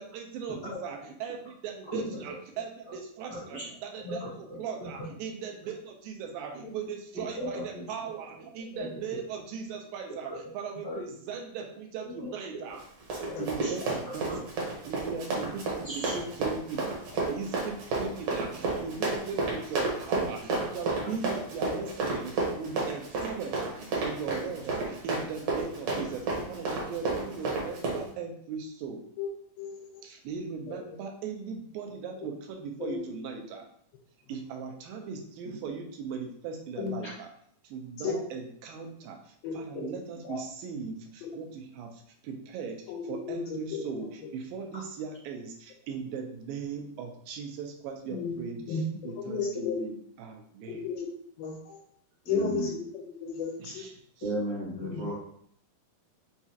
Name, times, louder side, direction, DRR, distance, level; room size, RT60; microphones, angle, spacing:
voice 1, 0.0-12.8 13.4-14.5 14.9-17.0 17.3-29.0 30.0-33.7 34.3-37.3 37.6-50.9 53.6-53.9, right 5 dB, 85° right, 3 dB, 2.4 m, -39 dB
voice 2, 1.9-2.3 2.9-3.0 3.3-3.6 4.0-5.0 7.4-7.8 8.7-8.9 10.8-11.0 12.2-12.3 13.3-13.8 15.8-16.1 21.0-21.1 40.2-40.4 52.2-52.7 54.2-55.1, equal, 55° left, -9 dB, 1.1 m, -36 dB
Run, 12.7-28.0, right 3 dB, 65° right, 1.7 m, -31 dB
voice 3, 13.4-13.7 21.7-21.9 26.8-26.9 29.2-29.3 29.6-30.0 30.7-31.0 32.8-33.1 36.8-37.0 38.0-38.2 39.4-39.9 41.2-41.4 42.9-44.3 48.1-48.4 48.7-49.8 50.7-51.1 51.4-51.8 52.3-53.9 54.7-55.1, left 5 dB, 85° left, 0 dB, 2.4 m, -34 dB
5.9 x 2.4 x 2.8 m, 0.63 s
omnidirectional pair, 4.2 m